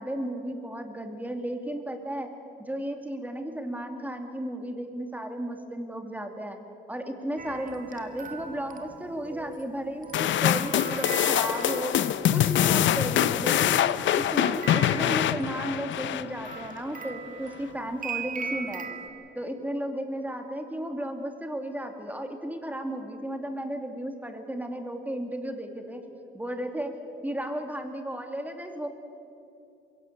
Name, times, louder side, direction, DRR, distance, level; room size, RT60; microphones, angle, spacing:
voice 1, 0.0-2.3 2.6-6.6 6.9-12.0 12.3-13.8 14.1-18.9 19.3-26.0 26.3-27.0 27.2-28.9, right 1 dB, 10° right, 5 dB, 2.6 m, -34 dB
sound 1, 7.4-12.4 13.6-19.1, right 5 dB, 40° right, 2.1 m, -40 dB
sound 2, 10.1-16.7, left 11 dB, 70° left, 0.7 m, -24 dB
22.0 x 17.0 x 8.6 m, 2.7 s
cardioid pair, 90°, 20 cm